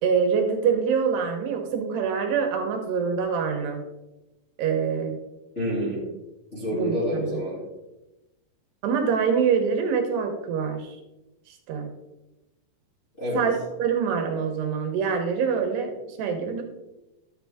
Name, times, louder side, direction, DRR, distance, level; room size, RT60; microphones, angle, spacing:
voice 1, 0.0-3.8 4.6-5.2 6.7-7.3 8.8-11.0 11.5-11.9 13.3-13.5 13.8-16.6, right 6 dB, 75° right, 4 dB, 2.9 m, -25 dB
voice 2, 5.5-6.0 6.5-7.6 13.2-13.4, equal, 20° left, -7 dB, 2.0 m, -28 dB
11.0 x 7.3 x 3.5 m, 0.99 s
omnidirectional pair, 5.0 m